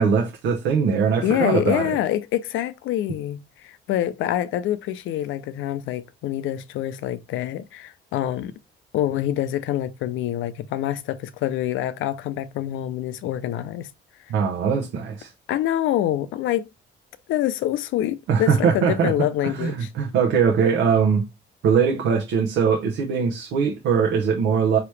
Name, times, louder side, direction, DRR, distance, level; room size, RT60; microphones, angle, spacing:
voice 1, 0.0-2.0 14.3-15.3 18.3-21.2 21.6-24.8, right 6 dB, 90° right, 0.8 m, -21 dB
voice 2, 1.2-8.5 8.9-13.9 15.5-16.7 17.3-19.9, left 12 dB, 85° left, 0.5 m, -26 dB
4.8 x 2.9 x 3.2 m
cardioid pair, 90°, 20 cm